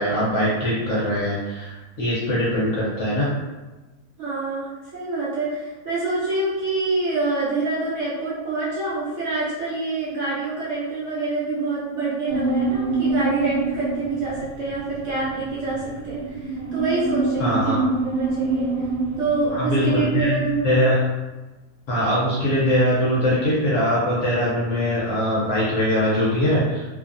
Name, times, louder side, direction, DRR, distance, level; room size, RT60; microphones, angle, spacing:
voice 1, 0.0-3.3 17.4-17.8 19.5-20.3 20.6-21.0 21.9-26.9, equal, 60° left, -7 dB, 0.8 m, -22 dB
voice 2, 4.2-17.8 18.0-18.7 19.2-20.7, right 3 dB, 55° right, -8 dB, 0.9 m, -26 dB
sound 1, 12.3-20.8, right 3 dB, 85° right, 1.2 m, -27 dB
2.7 x 2.3 x 2.5 m, 1.2 s
omnidirectional pair, 1.8 m